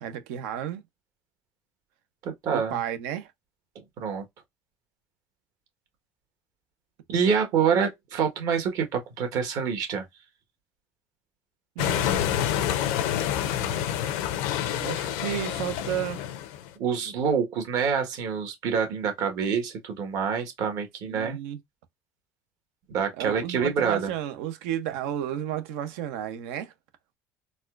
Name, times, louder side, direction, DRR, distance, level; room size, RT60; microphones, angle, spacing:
voice 1, 0.0-0.8 2.5-3.3 11.8-14.0 14.7-16.2 21.1-21.6 23.2-26.7, right 11 dB, 85° right, 0.8 m, -33 dB
voice 2, 2.2-2.8 4.0-4.2 7.1-10.0 16.8-21.4 22.9-24.1, right 6 dB, 65° right, 1.5 m, -26 dB
sound 1, 11.8-16.7, left 11 dB, 85° left, 0.6 m, -28 dB
4.1 x 2.3 x 2.5 m
supercardioid pair, 90°, 7 cm